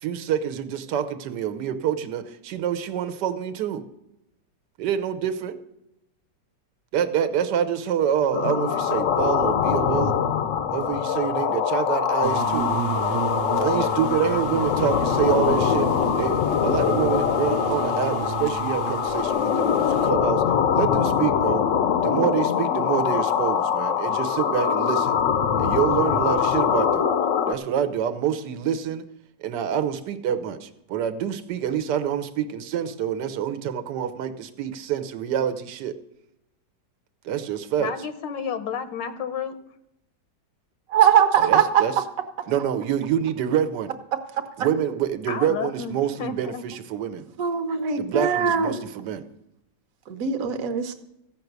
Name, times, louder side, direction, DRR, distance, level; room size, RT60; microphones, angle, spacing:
voice 1, 0.0-3.8 4.8-5.6 6.9-10.1 10.7-12.7 13.6-15.9 16.2-20.4 20.7-21.6 22.0-25.2 25.6-27.1 27.5-29.0 29.4-36.0 37.2-37.9 41.4-41.9 42.5-43.9 44.6-47.3 48.0-49.2, right 9 dB, 75° right, 9 dB, 1.4 m, -26 dB
sound 1, 8.3-27.5, left 8 dB, 65° left, 0.8 m, -23 dB
sound 2, 12.2-20.1, right 8 dB, 90° right, 1.4 m, -32 dB
voice 2, 37.8-39.6 45.3-46.6 47.7-47.8, left 7 dB, 85° left, 10 dB, 1.5 m, -31 dB
voice 3, 40.9-41.9 47.4-48.7 50.1-50.9, right 8 dB, 55° right, 6 dB, 1.3 m, -20 dB
14.5 x 5.9 x 8.0 m, 0.86 s
omnidirectional pair, 1.9 m